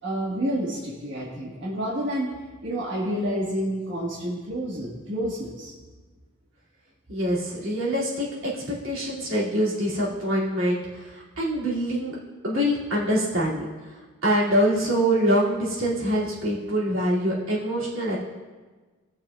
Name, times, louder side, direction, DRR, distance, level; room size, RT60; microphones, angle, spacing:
voice 1, 0.0-2.3 2.6-5.7, equal, 60° right, -7 dB, 1.6 m, -29 dB
voice 2, 7.1-12.2 12.4-13.7 14.2-18.2, equal, 90° right, -7 dB, 2.5 m, -25 dB
18.5 x 6.6 x 2.4 m, 1.3 s
head